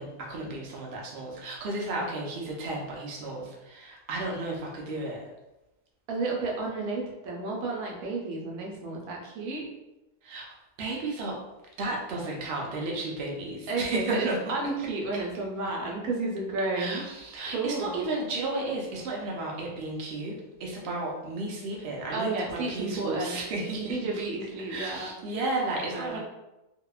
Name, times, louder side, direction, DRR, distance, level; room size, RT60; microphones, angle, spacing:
voice 1, 0.0-5.3 10.2-11.4 11.8-14.4 16.7-24.0 24.7-26.2, right 2 dB, 60° right, -2 dB, 0.6 m, -33 dB
voice 2, 6.1-9.7 13.7-17.0 17.5-18.0 22.1-23.4 23.8-25.1 25.9-26.2, right 3 dB, 75° right, -2 dB, 1.1 m, -32 dB
2.7 x 2.1 x 2.3 m, 1.0 s
omnidirectional pair, 1.6 m